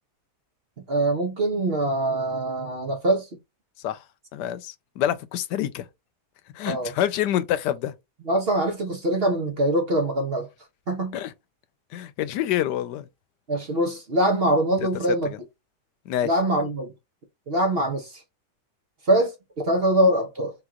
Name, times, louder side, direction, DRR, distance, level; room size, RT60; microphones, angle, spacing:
voice 1, 0.9-3.3 6.6-6.9 8.2-10.5 10.9-11.2 13.5-15.3 16.2-16.9 17.5-18.2 19.0-20.5, right 1 dB, 45° right, 0.8 m, -23 dB
voice 2, 4.3-5.8 6.5-7.9 11.1-11.3 11.9-13.0 15.2-15.4 16.1-16.3, left 11 dB, 85° left, 1.2 m, -27 dB
3.8 x 3.0 x 3.6 m
omnidirectional pair, 1.8 m